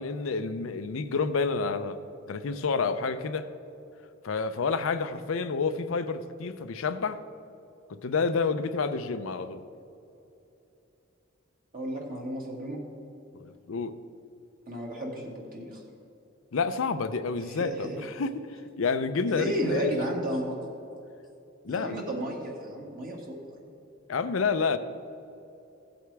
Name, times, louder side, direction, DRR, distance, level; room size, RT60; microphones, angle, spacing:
voice 1, 0.0-2.0 2.3-3.5 4.2-7.2 7.9-9.6 13.3-14.0 16.5-18.4 18.8-19.9 21.6-22.0 24.1-24.8, left 4 dB, 80° left, 10 dB, 0.6 m, -29 dB
voice 2, 11.7-12.8 14.7-15.8 17.4-18.0 19.3-20.6 21.7-23.3, equal, 45° right, -1 dB, 2.1 m, -33 dB
16.0 x 7.9 x 3.4 m, 2.8 s
head